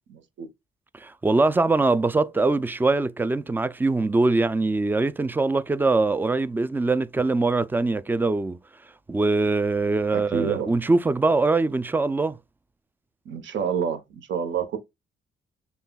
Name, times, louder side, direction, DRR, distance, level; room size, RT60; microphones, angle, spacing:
voice 1, 0.1-0.5 10.1-10.7 13.2-14.8, right 7 dB, 70° right, 1.0 m, -28 dB
voice 2, 0.9-8.6 9.1-12.4, right 3 dB, 10° right, 0.3 m, -22 dB
6.7 x 2.3 x 2.3 m
cardioid pair, 90°, 20 cm